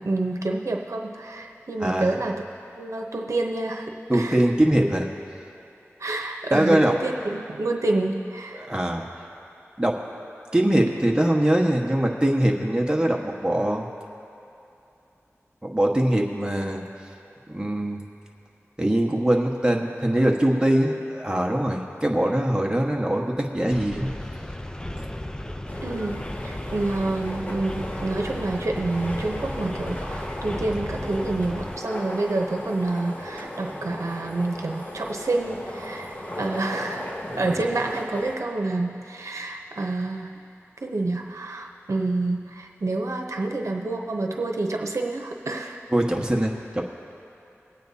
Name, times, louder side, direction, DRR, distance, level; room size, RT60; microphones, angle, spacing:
voice 1, 0.0-2.4 2.8-4.4 6.0-8.7 25.8-26.2 26.4-36.1 36.4-37.1 37.4-40.4 40.8-45.8, right 2 dB, 80° right, 2 dB, 0.8 m, -28 dB
voice 2, 1.8-2.1 4.1-5.1 6.5-7.0 8.6-9.0 9.8-10.0 10.5-13.9 15.6-16.8 17.5-18.1 18.8-24.1 25.0-25.1 45.9-46.8, right 1 dB, 15° right, 0 dB, 1.3 m, -22 dB
sound 1, 23.7-31.8, left 1 dB, 15° left, 0.5 m, -35 dB
sound 2, 25.7-38.4, left 1 dB, 35° left, 1.4 m, -36 dB
22.5 x 9.0 x 2.8 m, 2.8 s
wide cardioid pair, 50°, 5 cm